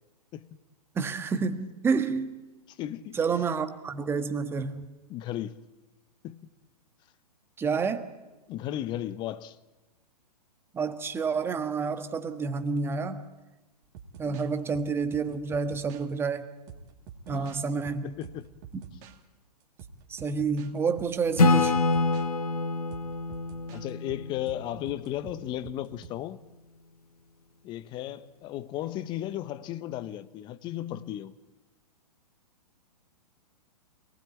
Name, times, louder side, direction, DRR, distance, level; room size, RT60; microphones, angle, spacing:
voice 1, 0.9-2.3 3.1-4.9 7.6-8.1 10.7-13.2 14.2-16.5 17.3-18.1 20.1-21.7, right 5 dB, 10° right, 1.4 m, -29 dB
voice 2, 2.7-3.2 5.1-5.6 6.2-6.4 8.5-9.6 14.2-14.4 17.3-17.6 18.0-18.5 23.7-26.4 27.6-31.3, left 12 dB, 20° left, 0.9 m, -35 dB
sound 1, 13.8-16.1 16.7-19.2 19.8-20.7 21.0-22.3 22.9-26.1, right 6 dB, 30° right, 2.3 m, -47 dB
Acoustic guitar / Strum, 21.4-24.9, left 3 dB, 65° left, 1.7 m, -26 dB
27.0 x 19.5 x 9.1 m
figure-of-eight pair, 115°, 20 cm